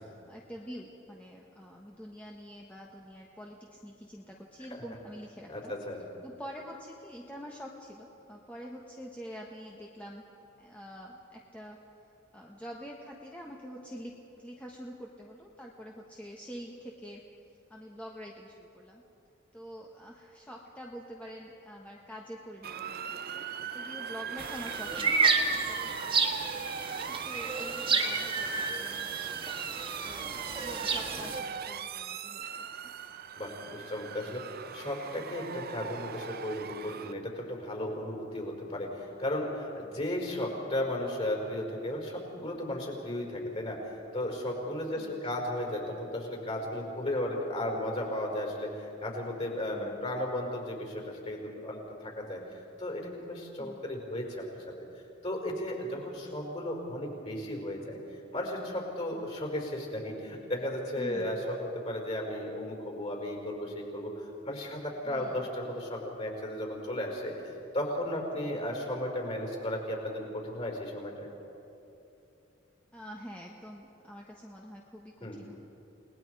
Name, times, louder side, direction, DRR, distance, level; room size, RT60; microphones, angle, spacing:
voice 1, 0.0-5.7 6.2-10.2 10.6-11.8 12.3-17.2 17.7-19.0 19.5-23.4 23.7-25.2 25.5-29.4 30.0-32.9 40.4-40.6 45.0-45.2 49.7-50.0 53.6-53.8 59.1-59.3 61.0-61.4 65.0-65.5 68.4-68.5 72.9-75.6, equal, 5° left, -2 dB, 1.3 m, -46 dB
voice 2, 5.5-6.0 33.4-43.8 44.1-52.4 52.8-54.4 55.2-58.0 58.3-67.3 67.7-71.3 75.2-75.4, left 1 dB, 35° left, 0 dB, 5.1 m, -35 dB
Motor vehicle (road) / Siren, 22.6-37.1, right 8 dB, 50° right, 0.7 m, -39 dB
sound 1, 24.4-31.4, right 4 dB, 25° right, 1.5 m, -31 dB
29.5 x 20.0 x 4.8 m, 2.8 s
head